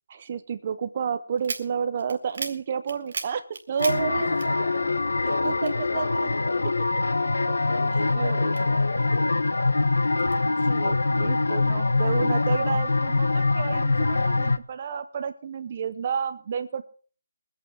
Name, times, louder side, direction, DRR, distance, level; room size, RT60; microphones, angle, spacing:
voice 1, 0.1-4.3 5.4-6.3 7.5-7.6 8.1-8.5 10.7-16.8, right 7 dB, 25° right, 11 dB, 0.7 m, -30 dB
sound 1, 1.4-5.0 5.3-6.6 7.1-9.1 9.6-10.4, right 4 dB, 45° right, 2.0 m, -37 dB
sound 2, 3.8-14.6, left 3 dB, 85° left, 1.0 m, -24 dB
voice 2, 4.1-6.7 7.7-9.8, left 2 dB, 70° left, 4 dB, 4.8 m, -36 dB
22.5 x 8.7 x 4.6 m, 0.41 s
hypercardioid pair, 180°, 0 cm